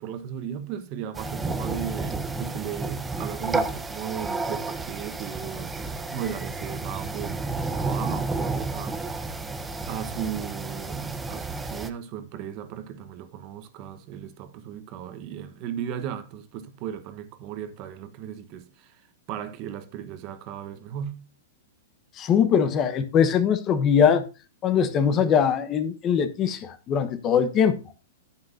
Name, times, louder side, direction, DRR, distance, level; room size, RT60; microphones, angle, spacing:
voice 1, 0.0-9.3 9.9-19.0 19.3-21.3, right 9 dB, 40° right, 1.2 m, -36 dB
sound 1, 1.1-11.9, right 3 dB, 10° right, 0.8 m, -31 dB
voice 2, 22.2-24.2 24.6-27.8, left 7 dB, 25° left, 1.1 m, -21 dB
10.5 x 9.7 x 2.7 m
hypercardioid pair, 150°, 0 cm